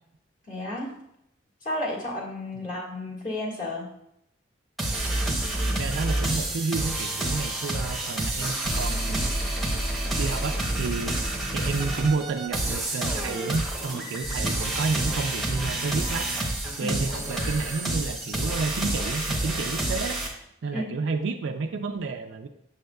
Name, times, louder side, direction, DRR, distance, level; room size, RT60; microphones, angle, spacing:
voice 1, 0.5-1.0 1.6-3.9 16.8-17.0 20.7-20.9, left 1 dB, 40° left, -4 dB, 1.7 m, -32 dB
sound 1, 4.8-20.3, right 1 dB, ahead, 0.8 m, -28 dB
voice 2, 5.7-9.3 10.2-11.2 11.5-16.3 16.8-20.2 20.6-22.5, right 4 dB, 80° right, 4 dB, 0.4 m, -30 dB
6.9 x 6.4 x 2.3 m, 0.77 s
head